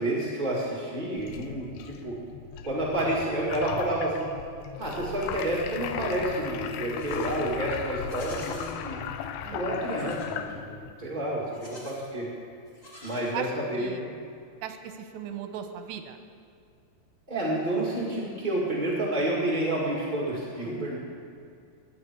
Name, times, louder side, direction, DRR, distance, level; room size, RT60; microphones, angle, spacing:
voice 1, 0.0-2.2 2.6-4.2 4.8-9.0 9.5-12.3 13.0-14.1 17.3-21.0, right 1 dB, 30° right, -5 dB, 0.8 m, -29 dB
sound 1, 1.2-10.9, left 8 dB, 80° left, 2.7 m, -37 dB
Livestock farm animals working animals, 6.7-7.4 8.0-8.8 9.9-10.4 11.4-12.1 12.7-13.7, equal, 15° left, 2.5 m, -49 dB
voice 2, 9.4-10.0 13.3-13.5 13.7-14.0 14.6-16.2, right 9 dB, 90° right, 7 dB, 3.1 m, -38 dB
21.5 x 9.8 x 4.6 m, 2.3 s
omnidirectional pair, 4.8 m